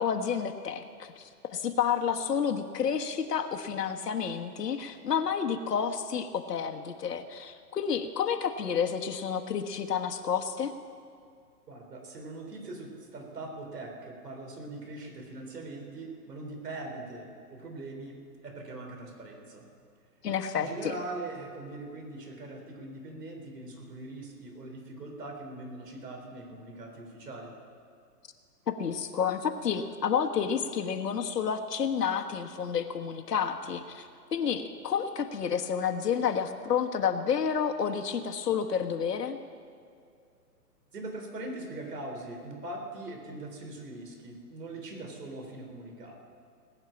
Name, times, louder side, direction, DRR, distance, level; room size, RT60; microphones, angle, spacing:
voice 1, 0.0-10.7 20.2-20.9 28.7-39.4, left 7 dB, 75° left, 5 dB, 1.4 m, -30 dB
voice 2, 11.7-18.2 18.4-19.6 20.5-27.5 40.9-46.2, right 2 dB, 75° right, 2 dB, 3.9 m, -41 dB
19.5 x 6.6 x 8.7 m, 2.3 s
hypercardioid pair, 165°, 48 cm